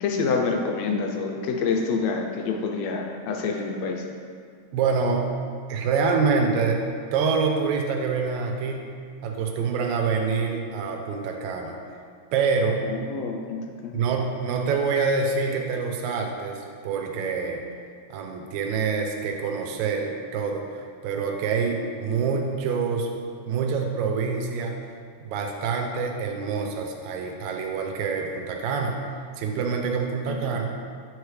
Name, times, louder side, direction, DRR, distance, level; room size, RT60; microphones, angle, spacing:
voice 1, 0.0-4.0 12.8-14.0 30.5-30.6, left 4 dB, 75° left, 2 dB, 1.6 m, -27 dB
voice 2, 4.7-5.3 5.7-6.8 7.1-8.9 9.2-11.8 12.3-12.8 13.9-17.6 18.1-23.1 23.5-24.8 25.2-29.0 29.4-30.7, right 5 dB, 80° right, 2 dB, 2.0 m, -26 dB
8.5 x 4.8 x 3.2 m, 2.2 s
omnidirectional pair, 3.4 m